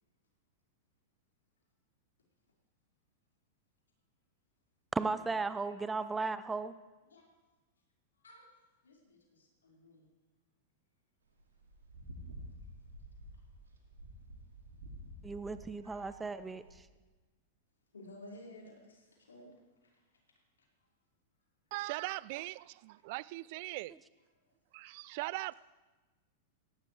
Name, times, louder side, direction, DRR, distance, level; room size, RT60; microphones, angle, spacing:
voice 1, 4.9-6.7 15.2-16.6, right 4 dB, 10° right, 0.6 m, -35 dB
voice 2, 8.1-8.5 8.8-10.1 16.4-16.5 17.9-19.5 19.8-20.0, left 1 dB, 80° left, 5.1 m, -54 dB
sound 1, 11.3-16.8, equal, 80° right, 2.7 m, -51 dB
voice 3, 21.7-23.9 24.7-25.5, right 21 dB, 50° right, 0.3 m, -40 dB
18.0 x 16.5 x 3.4 m
figure-of-eight pair, 95°, 0 cm